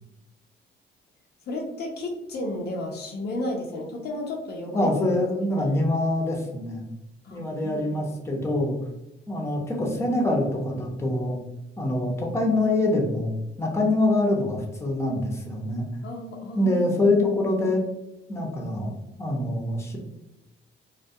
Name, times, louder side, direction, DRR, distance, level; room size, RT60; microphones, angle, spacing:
voice 1, 1.5-4.9 5.5-5.7 7.2-8.0 16.0-17.2, left 1 dB, 55° left, 0 dB, 0.5 m, -33 dB
voice 2, 4.7-6.8 7.3-8.8 9.3-11.4 11.8-13.3 13.6-15.9 16.6-17.8 18.3-20.0, left 2 dB, 15° left, -1 dB, 0.6 m, -25 dB
2.2 x 2.2 x 2.6 m, 0.95 s
cardioid pair, 90°, 20 cm